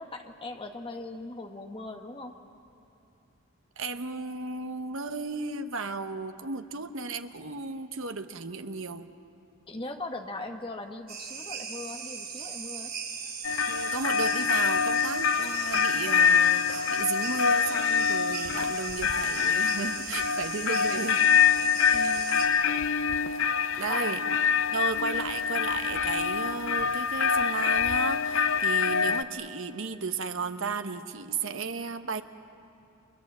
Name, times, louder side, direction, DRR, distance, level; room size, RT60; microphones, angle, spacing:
voice 1, 0.0-2.4 9.7-13.0 21.9-22.4 23.9-24.0, left 2 dB, 25° left, 4 dB, 1.4 m, -40 dB
voice 2, 3.8-9.1 13.7-21.3 21.9-22.1 23.7-24.2 24.7-32.2, right 4 dB, 65° right, 8 dB, 1.1 m, -34 dB
sound 1, 11.1-22.5, right 6 dB, 45° right, 3.5 m, -39 dB
sound 2, 13.4-29.2, left 6 dB, 65° left, 0.6 m, -25 dB
29.5 x 25.0 x 7.4 m, 2.7 s
head